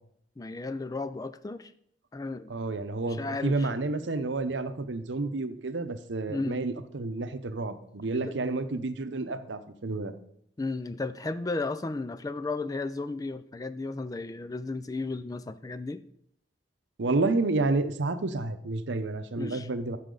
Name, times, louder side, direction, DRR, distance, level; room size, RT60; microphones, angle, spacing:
voice 1, 0.4-1.7 2.1-2.5 3.1-3.8 6.3-6.6 8.1-8.3 10.6-16.0 19.4-19.7, left 3 dB, 20° left, 13 dB, 0.3 m, -34 dB
voice 2, 2.5-10.1 17.0-20.0, right 3 dB, 80° right, 10 dB, 0.8 m, -30 dB
13.5 x 5.9 x 3.8 m, 0.71 s
head